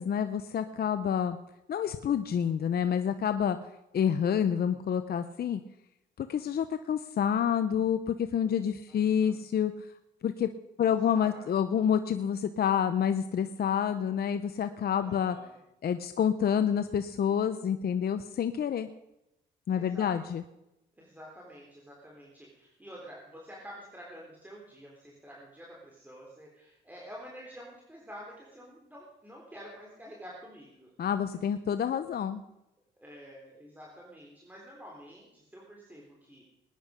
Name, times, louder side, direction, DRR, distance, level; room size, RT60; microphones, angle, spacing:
voice 1, 0.0-1.4 1.7-3.6 3.9-5.6 6.2-9.7 10.2-10.5 10.8-15.4 15.8-18.9 19.7-20.4 31.0-32.4, left 8 dB, 50° left, 9 dB, 0.8 m, -28 dB
voice 2, 8.9-9.4 10.8-11.4 15.0-15.5 19.7-20.1 21.0-30.9 33.0-36.4, equal, 10° right, -3 dB, 3.8 m, -49 dB
19.5 x 10.0 x 5.2 m, 0.89 s
cardioid pair, 90°, 20 cm